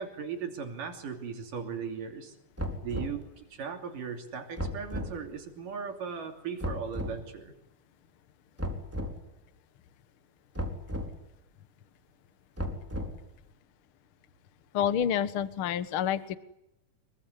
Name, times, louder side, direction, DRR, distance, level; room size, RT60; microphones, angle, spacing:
voice 1, 0.0-2.4 2.8-7.5, right 6 dB, 65° right, 5 dB, 4.5 m, -38 dB
sound 1, 2.6-3.2 4.6-5.1 6.6-7.2 8.6-9.2 10.5-11.1 12.6-13.3, equal, 5° right, 3.9 m, -35 dB
voice 2, 14.7-16.4, left 9 dB, 60° left, 13 dB, 1.4 m, -28 dB
26.0 x 23.5 x 9.7 m, 0.88 s
omnidirectional pair, 4.1 m